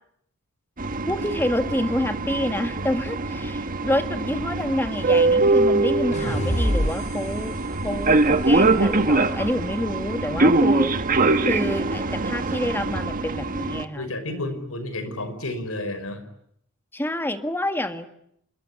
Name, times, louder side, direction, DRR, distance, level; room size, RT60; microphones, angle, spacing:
sound 1, 0.8-13.8, right 2 dB, 40° right, 1.6 m, -23 dB
voice 1, 1.1-7.6 7.8-10.9 11.5-14.7 16.9-18.1, left 1 dB, 10° left, 8 dB, 1.8 m, -28 dB
sound 2, 6.1-9.4, equal, 35° left, 2.4 m, -28 dB
voice 2, 13.9-16.2, left 1 dB, 70° left, 10 dB, 5.4 m, -31 dB
27.5 x 22.0 x 9.8 m, 0.72 s
head